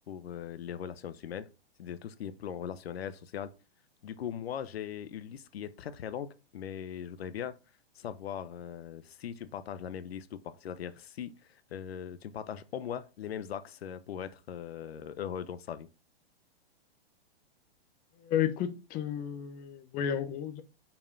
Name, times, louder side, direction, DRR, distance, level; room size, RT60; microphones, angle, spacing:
voice 1, 0.1-1.5 1.8-3.5 4.0-7.5 7.9-15.9, left 9 dB, 75° left, 0.9 m, -40 dB
voice 2, 18.2-20.6, left 9 dB, 30° left, 1.1 m, -32 dB
5.6 x 4.7 x 5.3 m
hypercardioid pair, 135°, 31 cm